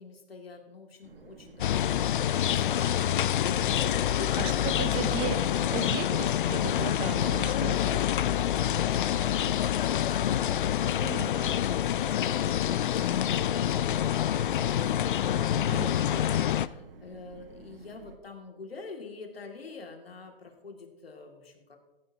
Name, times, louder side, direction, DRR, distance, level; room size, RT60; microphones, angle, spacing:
voice 1, 0.0-5.8 7.9-11.0 11.4-15.9 16.3-21.8, left 4 dB, 90° left, 3 dB, 2.3 m, -46 dB
sound 1, 1.0-18.2, right 5 dB, 70° right, 1.5 m, -51 dB
sound 2, 1.6-16.7, left 11 dB, 60° left, 0.5 m, -27 dB
voice 2, 4.4-5.4 5.7-8.0 11.0-11.5 15.5-16.2, right 9 dB, 20° right, 11 dB, 0.6 m, -36 dB
15.0 x 15.0 x 2.8 m, 1.1 s
hypercardioid pair, 140°, 29 cm